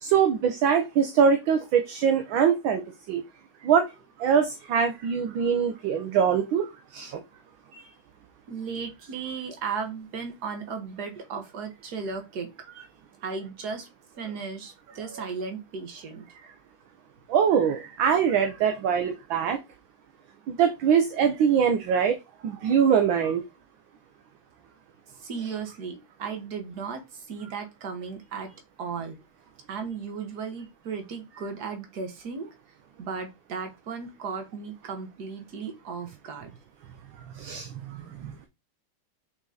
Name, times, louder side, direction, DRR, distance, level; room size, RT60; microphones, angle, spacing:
voice 1, 0.0-2.8 3.1-3.2 3.6-3.9 4.2-7.2 7.7-7.9 15.2-15.3 17.3-19.6 20.5-22.2 22.4-23.4 37.3-38.5, right 7 dB, 70° right, 7 dB, 1.4 m, -23 dB
voice 2, 8.5-12.5 13.2-13.9 14.2-16.3 25.1-28.5 28.8-29.2 29.7-32.5 33.0-36.5, right 5 dB, 50° right, 5 dB, 1.8 m, -35 dB
5.9 x 4.1 x 3.8 m, 0.24 s
omnidirectional pair, 2.4 m